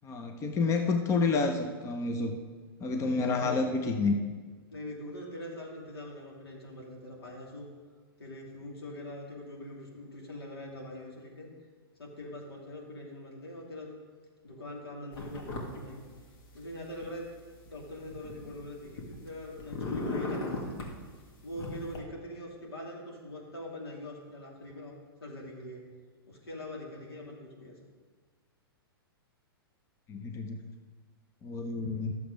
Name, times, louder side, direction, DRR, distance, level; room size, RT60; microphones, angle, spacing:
voice 1, 0.0-2.4 2.8-4.3 30.1-30.6 31.4-32.1, left 3 dB, 25° left, 5 dB, 0.8 m, -29 dB
voice 2, 3.0-3.5 4.7-7.7 8.2-11.5 12.0-13.9 14.4-16.1 16.5-17.2 17.7-20.8 21.4-25.8 26.3-27.8 31.8-32.1, left 1 dB, 85° left, -2 dB, 2.8 m, -43 dB
sound 1, 15.1-15.8 16.1-17.1 17.7-19.3 19.6-20.9 21.5-22.0, left 2 dB, 60° left, 2.1 m, -37 dB
12.0 x 7.1 x 5.1 m, 1.5 s
hypercardioid pair, 115°, 13 cm